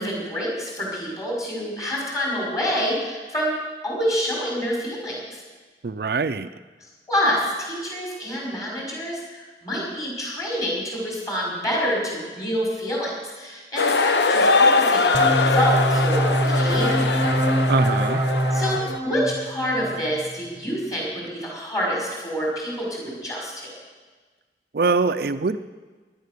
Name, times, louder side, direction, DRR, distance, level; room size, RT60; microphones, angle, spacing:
voice 1, 0.0-3.6 3.8-5.4 7.1-17.2 18.5-23.7, equal, 20° left, -3 dB, 5.5 m, -27 dB
voice 2, 5.8-6.5 17.7-18.2 24.7-25.6, right 4 dB, 55° right, 9 dB, 0.4 m, -23 dB
sound 1, 13.8-19.0, left 3 dB, 80° left, 0.9 m, -22 dB
sound 2, 15.1-20.5, equal, 15° right, 1.1 m, -23 dB
17.5 x 11.5 x 6.7 m, 1.4 s
head